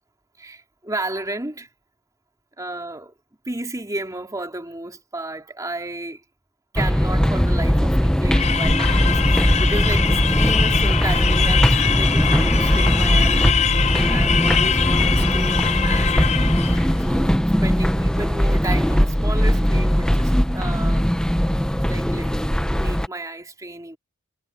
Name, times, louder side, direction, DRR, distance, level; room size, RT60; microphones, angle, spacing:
voice 1, 0.4-1.7 2.6-3.1 3.4-6.2 6.7-21.1 21.6-22.3 22.7-24.0, right 2 dB, 15° right, 3.0 m, -33 dB
sound 1, 6.8-23.1, equal, 5° left, 0.9 m, -19 dB
sound 2, 8.3-16.9, left 7 dB, 30° left, 0.5 m, -23 dB
head